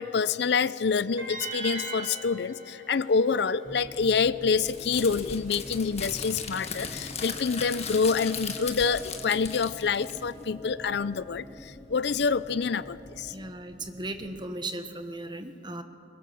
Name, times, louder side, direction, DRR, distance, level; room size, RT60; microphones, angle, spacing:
voice 1, 0.0-13.3, left 5 dB, 60° left, 17 dB, 0.5 m, -27 dB
sound 1, 1.2-4.3, right 3 dB, 85° right, 6.5 m, -39 dB
sound 2, 3.6-14.5, equal, 15° left, 1.0 m, -45 dB
Crumpling crinkling, 4.6-10.5, left 6 dB, 35° left, 1.6 m, -37 dB
voice 2, 13.3-15.8, right 2 dB, 25° right, 7 dB, 1.3 m, -37 dB
23.5 x 22.0 x 7.1 m, 2.6 s
head